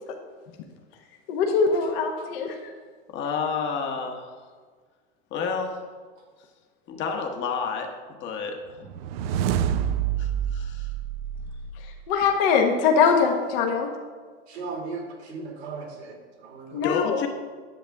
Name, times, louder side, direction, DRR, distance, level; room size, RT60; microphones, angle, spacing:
voice 1, 1.3-2.6 12.1-13.9 16.7-17.2, left 5 dB, 60° left, 2 dB, 1.3 m, -22 dB
voice 2, 3.1-4.3 5.3-5.8 6.9-8.8 10.2-10.9 16.7-17.3, left 5 dB, 35° left, 3 dB, 1.3 m, -30 dB
sound 1, 8.8-12.1, right 9 dB, 65° right, 0.6 m, -28 dB
voice 3, 14.5-16.8, right 4 dB, 85° right, 0 dB, 2.5 m, -37 dB
10.5 x 7.5 x 3.5 m, 1.5 s
supercardioid pair, 130°, 32 cm